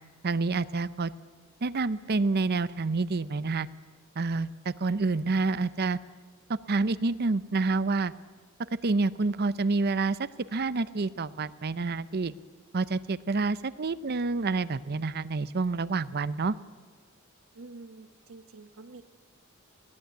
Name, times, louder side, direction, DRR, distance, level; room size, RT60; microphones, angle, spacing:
voice 1, 0.2-1.1 1.6-3.7 4.2-6.0 6.5-8.1 8.8-12.3 12.7-16.5, right 3 dB, 50° right, 17 dB, 0.6 m, -28 dB
voice 2, 17.5-19.0, right 3 dB, 75° right, 10 dB, 1.2 m, -47 dB
20.5 x 16.5 x 9.4 m, 1.5 s
head